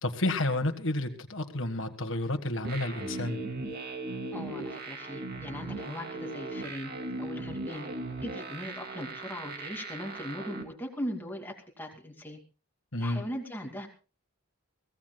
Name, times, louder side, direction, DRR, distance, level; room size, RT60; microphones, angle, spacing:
voice 1, 0.0-3.4 12.9-13.2, left 1 dB, 60° left, 6 dB, 1.7 m, -30 dB
sound 1, 2.6-10.6, right 2 dB, 45° right, 2.4 m, -38 dB
voice 2, 4.3-6.9 7.2-7.9 8.2-12.4 13.0-13.9, equal, 10° left, 2 dB, 2.6 m, -39 dB
23.0 x 16.5 x 2.4 m, 0.34 s
head